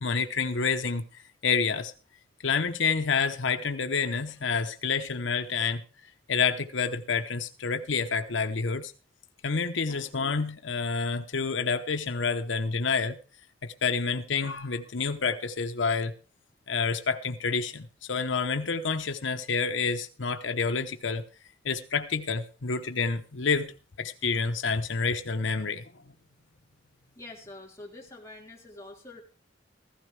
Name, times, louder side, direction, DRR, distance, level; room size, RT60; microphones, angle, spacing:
voice 1, 0.0-1.9 2.4-5.8 6.3-8.9 9.4-13.2 13.6-16.1 16.7-21.2 21.6-23.7 24.0-25.8, left 5 dB, 85° left, 0.9 m, -28 dB
voice 2, 27.2-29.2, left 2 dB, 15° left, 3.1 m, -45 dB
15.5 x 15.5 x 3.3 m
head